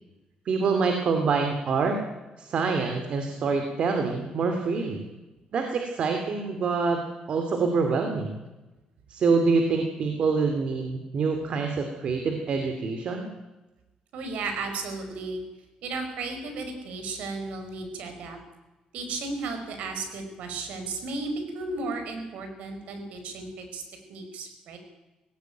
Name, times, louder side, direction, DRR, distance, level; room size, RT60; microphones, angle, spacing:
voice 1, 0.5-2.0 2.4-5.1 5.5-8.4 9.1-13.3, right 4 dB, 50° right, 5 dB, 2.5 m, -26 dB
voice 2, 14.1-15.4 15.8-18.4 18.9-23.8 24.1-24.8, right 3 dB, 80° right, 6 dB, 5.1 m, -34 dB
18.5 x 17.0 x 9.3 m, 1.1 s
cardioid pair, 145°, 2 cm